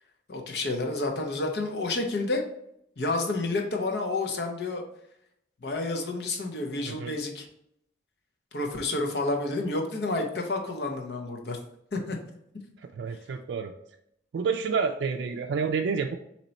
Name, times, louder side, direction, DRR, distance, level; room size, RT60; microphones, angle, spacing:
voice 1, 0.3-2.4 3.0-4.8 5.6-7.5 8.5-11.6 11.9-12.2, left 2 dB, 70° left, 3 dB, 0.8 m, -29 dB
voice 2, 12.9-13.7 14.3-16.2, right 5 dB, 85° right, 4 dB, 0.3 m, -29 dB
4.3 x 3.0 x 4.0 m, 0.75 s
head